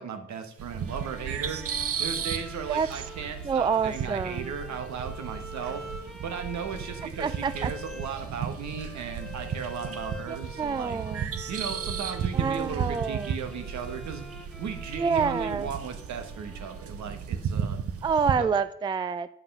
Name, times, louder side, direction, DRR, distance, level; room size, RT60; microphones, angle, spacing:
voice 1, 0.0-1.6 2.0-5.8 6.2-11.0 11.5-14.2 14.6-17.8 18.4-18.5, right 6 dB, 65° right, 7 dB, 1.5 m, -36 dB
sound 1, 0.6-18.4, right 7 dB, 50° right, 0.9 m, -35 dB
Bowed string instrument, 0.8-17.4, equal, ahead, 1.5 m, -46 dB
voice 2, 3.4-4.5 7.2-7.7 10.3-11.3 12.3-13.3 14.9-15.7 18.0-19.3, right 6 dB, 15° right, 15 dB, 0.3 m, -27 dB
9.7 x 5.7 x 5.5 m, 0.74 s
cardioid pair, 90°, 30 cm